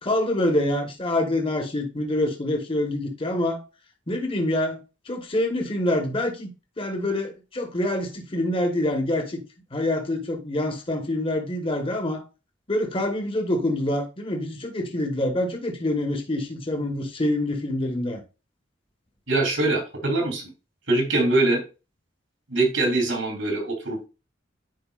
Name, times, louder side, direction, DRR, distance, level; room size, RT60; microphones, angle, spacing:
voice 1, 0.0-3.6 4.1-4.8 5.0-6.5 6.8-9.4 9.7-12.2 12.7-18.2, left 1 dB, 30° left, 1.3 m, -26 dB
voice 2, 19.3-20.4 20.9-21.6 22.5-24.1, right 2 dB, 80° right, 3.6 m, -23 dB
10.5 x 4.7 x 2.5 m
head